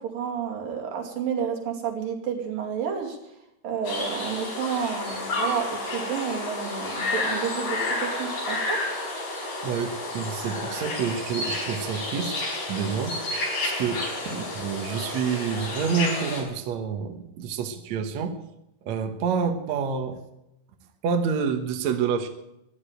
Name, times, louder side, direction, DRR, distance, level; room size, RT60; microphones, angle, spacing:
voice 1, 0.0-3.2 3.6-8.8, right 7 dB, 80° right, 1 dB, 4.3 m, -30 dB
sound 1, 3.8-16.4, left 2 dB, 75° left, 6.5 m, -30 dB
voice 2, 9.6-13.2 13.6-18.4 18.8-20.2 21.0-22.3, right 6 dB, 65° right, 6 dB, 2.2 m, -28 dB
15.0 x 10.5 x 9.0 m, 0.85 s
omnidirectional pair, 3.9 m